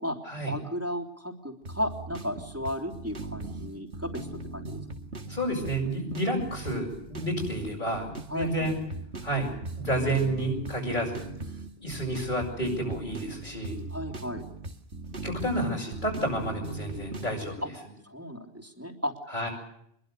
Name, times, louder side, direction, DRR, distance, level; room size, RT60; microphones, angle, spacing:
voice 1, 0.5-4.3 4.5-4.8 8.3-8.7 13.9-14.5 17.6-17.7 18.0-19.1, equal, 15° right, 4 dB, 3.2 m, -34 dB
sound 1, 1.6-17.6, right 2 dB, 85° right, 2.4 m, -39 dB
voice 2, 5.3-8.8 9.2-11.3 11.8-13.8 15.1-17.6 19.3-19.5, right 1 dB, 45° left, -3 dB, 7.0 m, -30 dB
26.0 x 22.5 x 6.7 m, 0.73 s
omnidirectional pair, 1.1 m